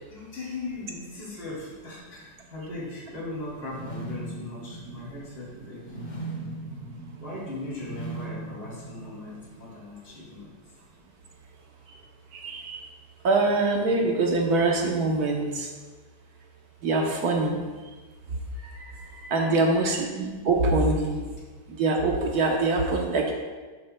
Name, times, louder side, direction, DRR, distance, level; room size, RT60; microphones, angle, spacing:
voice 1, 0.1-6.0 7.2-10.8 18.4-18.7 19.3-19.9, left 2 dB, 65° left, -6 dB, 3.2 m, -39 dB
sound 1, 3.5-9.6, right 2 dB, 35° left, 0.8 m, -39 dB
voice 2, 12.3-12.8 13.2-15.7 16.8-17.6 19.2-21.2 21.8-23.3, right 3 dB, 65° right, 1 dB, 1.3 m, -24 dB
13.0 x 6.6 x 2.2 m, 1.4 s
omnidirectional pair, 1.9 m